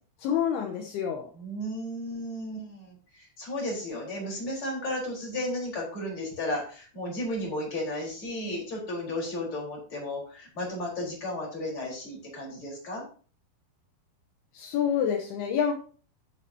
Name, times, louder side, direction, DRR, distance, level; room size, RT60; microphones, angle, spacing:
voice 1, 0.2-1.3 14.5-15.7, left 8 dB, 75° left, 4 dB, 2.6 m, -27 dB
voice 2, 1.3-13.0, left 1 dB, 30° left, -2 dB, 4.8 m, -34 dB
10.5 x 10.5 x 2.9 m, 0.42 s
omnidirectional pair, 5.3 m